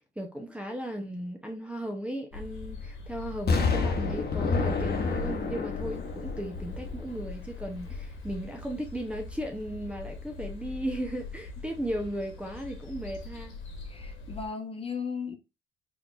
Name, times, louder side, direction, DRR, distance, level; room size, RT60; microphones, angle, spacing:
voice 1, 0.0-13.6, right 1 dB, 5° right, 0.8 m, -36 dB
sound 1, 2.3-14.5, left 3 dB, 80° left, 1.5 m, -42 dB
Explosion, 3.5-7.4 7.9-8.0, left 4 dB, 50° left, 1.0 m, -29 dB
voice 2, 13.9-15.4, left 5 dB, 30° left, 1.0 m, -36 dB
4.2 x 3.5 x 2.4 m
cardioid pair, 90°, 20 cm